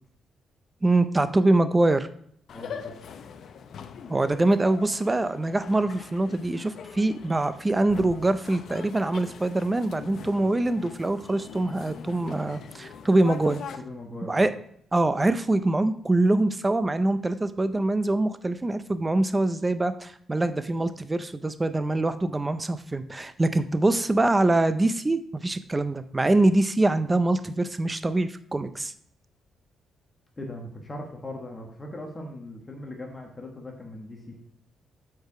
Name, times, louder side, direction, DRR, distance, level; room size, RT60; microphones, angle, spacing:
voice 1, 0.8-2.1 4.1-13.6 14.2-14.5 14.9-28.9, right 2 dB, 15° right, 11 dB, 0.4 m, -24 dB
sound 1, 2.5-13.8, left 7 dB, 55° left, 0.6 m, -42 dB
voice 2, 2.5-2.9 13.8-14.4 30.4-34.3, left 1 dB, 20° left, 1 dB, 1.3 m, -39 dB
8.1 x 4.7 x 4.7 m, 0.66 s
cardioid pair, 145°, 0 cm